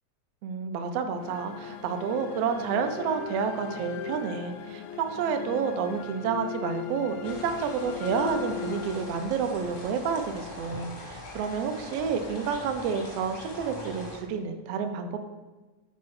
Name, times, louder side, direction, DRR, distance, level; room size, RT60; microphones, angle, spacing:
voice 1, 0.4-15.3, right 6 dB, 80° right, 6 dB, 1.4 m, -30 dB
sound 1, 1.2-9.5, left 9 dB, 80° left, 1.9 m, -38 dB
sound 2, 7.2-14.2, left 1 dB, 40° left, 0.8 m, -42 dB
5.2 x 4.3 x 5.6 m, 1.2 s
omnidirectional pair, 3.3 m